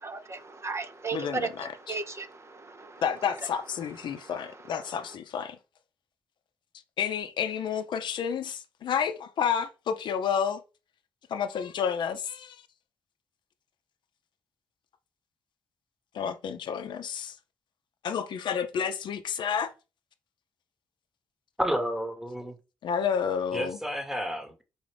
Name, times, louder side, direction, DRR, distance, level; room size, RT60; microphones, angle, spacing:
voice 1, 0.0-3.0 4.1-4.3, right 4 dB, 35° right, 0.5 m, -36 dB
voice 2, 1.1-2.0 3.0-5.6 7.0-10.6 11.3-12.6 16.1-17.4 18.0-19.7 22.8-23.8, left 7 dB, 65° left, 0.5 m, -30 dB
voice 3, 21.6-22.5 23.5-24.6, equal, 5° right, 1.0 m, -31 dB
4.1 x 2.4 x 3.3 m
supercardioid pair, 55°, 8 cm